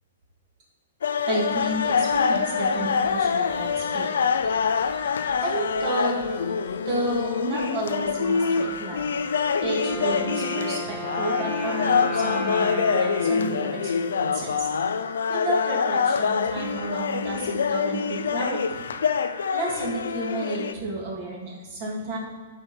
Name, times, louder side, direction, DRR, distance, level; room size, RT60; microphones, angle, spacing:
sound 1, 1.0-20.7, left 6 dB, 90° left, 0.6 m, -25 dB
voice 1, 1.3-4.1 5.4-6.2 6.8-9.1 9.6-14.7 15.3-18.6 19.5-22.2, right 2 dB, 40° right, -3 dB, 2.8 m, -31 dB
sound 2, 1.7-10.3, left 5 dB, 25° left, 1.1 m, -46 dB
Wind instrument woodwind instrument, 9.6-14.5, equal, 5° left, 2.0 m, -34 dB
12.5 x 5.1 x 4.5 m, 1.5 s
hypercardioid pair, 160°, 0 cm